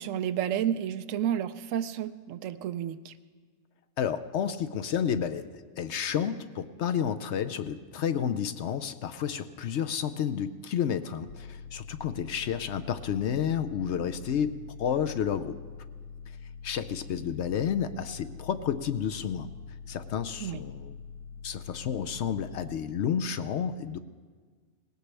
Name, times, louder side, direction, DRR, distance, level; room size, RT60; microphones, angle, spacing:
voice 1, 0.0-3.1 20.4-20.6, right 10 dB, 75° right, 12 dB, 0.9 m, -31 dB
voice 2, 4.0-5.5 5.8-15.6 16.6-19.5 19.9-20.9 21.4-24.0, left 8 dB, 65° left, 10 dB, 0.8 m, -31 dB
sound 1, 11.3-22.7, left 5 dB, 90° left, 1.1 m, -45 dB
19.0 x 17.0 x 3.3 m, 1.5 s
omnidirectional pair, 1.4 m